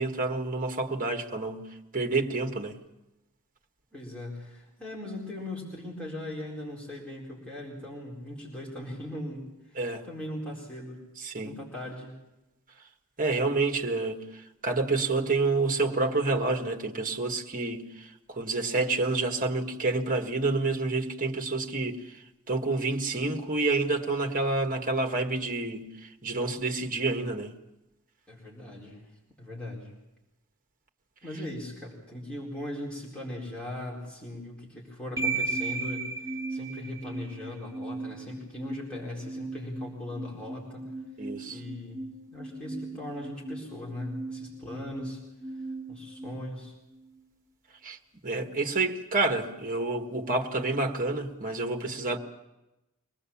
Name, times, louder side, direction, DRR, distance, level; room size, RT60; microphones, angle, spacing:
voice 1, 0.0-1.7 1.9-2.8 9.8-10.0 11.2-11.5 13.2-22.2 22.5-27.5 41.2-41.6 47.8-48.0 48.2-52.2, right 3 dB, 40° right, 1.6 m, -28 dB
voice 2, 3.9-11.0 11.4-12.1 28.3-29.1 29.4-29.9 31.2-40.9 41.5-45.2 45.5-45.6 45.9-46.7, left 1 dB, 5° left, 4.4 m, -39 dB
sound 1, 35.2-47.2, right 3 dB, 15° right, 2.1 m, -37 dB
24.0 x 19.0 x 7.2 m
head